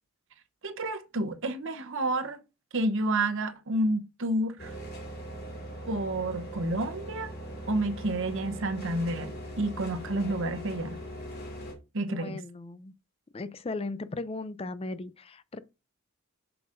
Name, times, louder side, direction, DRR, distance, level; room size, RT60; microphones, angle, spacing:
voice 1, 0.6-2.4 2.7-4.7 5.9-7.3 7.7-9.3 9.6-11.0 11.9-12.3, right 1 dB, 60° right, 0.8 m, -30 dB
sound 1, 4.6-11.7, equal, 45° left, 2.4 m, -40 dB
voice 2, 12.0-12.9 13.3-15.6, left 2 dB, 25° left, 0.4 m, -37 dB
7.1 x 5.9 x 2.5 m
head